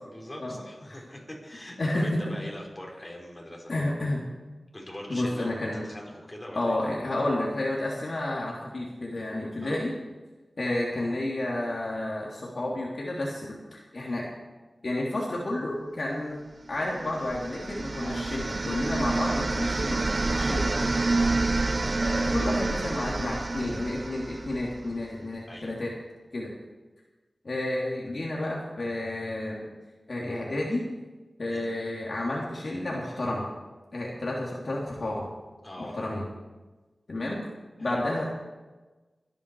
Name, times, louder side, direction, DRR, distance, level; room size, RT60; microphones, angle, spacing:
voice 1, 0.0-3.7 4.7-6.9 9.6-9.8 18.0-18.2 20.3-21.4 25.5-25.7 31.5-31.7 35.6-36.0 37.8-38.0, left 1 dB, 25° left, -2 dB, 5.3 m, -42 dB
voice 2, 1.8-2.3 3.7-4.3 5.1-5.8 6.5-10.0 10.6-14.3 14.8-16.4 16.7-20.9 22.0-25.9 26.3-26.5 27.4-29.7 30.1-30.9 31.4-33.5 33.9-35.3 35.8-36.2 37.1-37.4 37.8-38.3, left 1 dB, 60° left, -4 dB, 3.3 m, -31 dB
sound 1, 16.9-24.9, right 3 dB, 45° right, 0.4 m, -28 dB
23.5 x 10.5 x 4.9 m, 1.2 s
wide cardioid pair, 70°, 0 cm